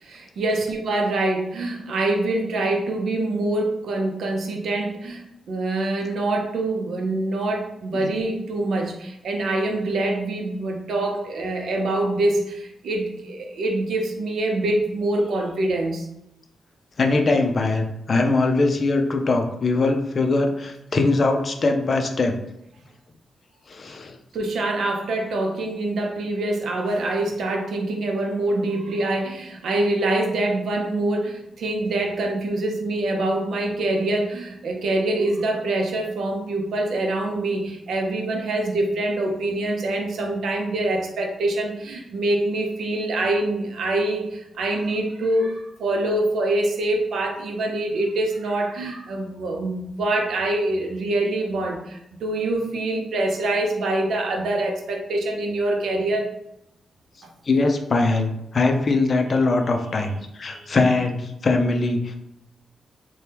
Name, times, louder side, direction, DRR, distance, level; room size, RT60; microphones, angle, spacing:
voice 1, 0.0-16.1 24.3-56.3 57.2-57.3 60.5-60.7, right 2 dB, 80° right, 2 dB, 0.5 m, -25 dB
voice 2, 17.0-22.4 23.7-24.2 57.5-62.2, left 3 dB, 45° left, 5 dB, 0.4 m, -21 dB
3.3 x 2.2 x 2.8 m, 0.82 s
cardioid pair, 90°, 0 cm